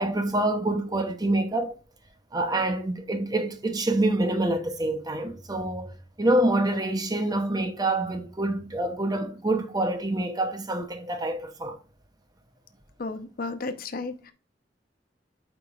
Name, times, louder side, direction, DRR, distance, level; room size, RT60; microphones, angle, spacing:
voice 1, 0.0-1.8 2.3-11.8, right 1 dB, 20° right, 0.7 m, -26 dB
voice 2, 13.0-14.3, left 3 dB, 55° left, 0.8 m, -33 dB
8.9 x 4.9 x 2.4 m
head